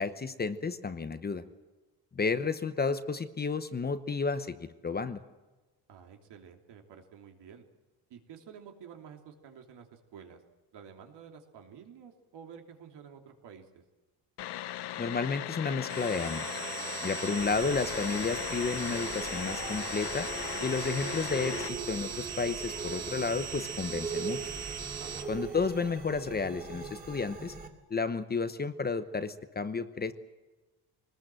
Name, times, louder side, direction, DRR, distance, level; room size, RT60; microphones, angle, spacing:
voice 1, 0.0-1.4 2.1-5.2 15.0-16.6 17.0-20.3 20.6-24.4 25.3-27.5 27.9-30.1, left 4 dB, 25° left, 11 dB, 0.9 m, -32 dB
voice 2, 5.9-7.6 8.1-10.4 10.7-13.8 25.0-25.4, right 7 dB, 75° right, 4 dB, 3.1 m, -50 dB
sound 1, 14.4-21.7, left 13 dB, 70° left, 1.0 m, -38 dB
sound 2, 15.9-25.2, right 6 dB, 40° right, 1.9 m, -39 dB
sound 3, 17.4-27.7, right 4 dB, 20° right, 2.8 m, -41 dB
24.0 x 20.0 x 7.6 m, 1.2 s
cardioid pair, 170°, 41 cm